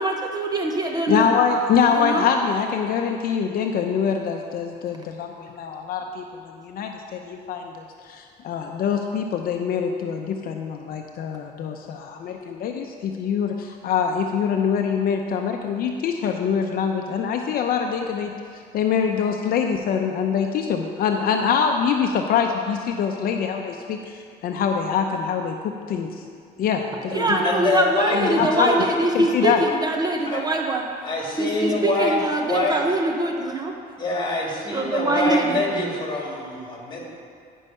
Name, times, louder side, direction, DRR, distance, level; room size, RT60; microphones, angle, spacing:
voice 1, 0.0-1.3 1.9-2.3 27.1-30.9 31.4-33.7 34.7-35.6, right 2 dB, 25° right, 2 dB, 0.7 m, -23 dB
voice 2, 1.1-6.2 6.5-18.3 18.7-26.1 26.6-27.4 28.1-28.7 29.1-29.6, left 7 dB, 60° left, 4 dB, 0.6 m, -24 dB
voice 3, 27.1-28.8 30.3-30.4 31.0-32.8 34.0-37.0, left 2 dB, 25° left, -2 dB, 2.2 m, -25 dB
9.9 x 5.5 x 5.4 m, 2.2 s
cardioid pair, 110°, 17 cm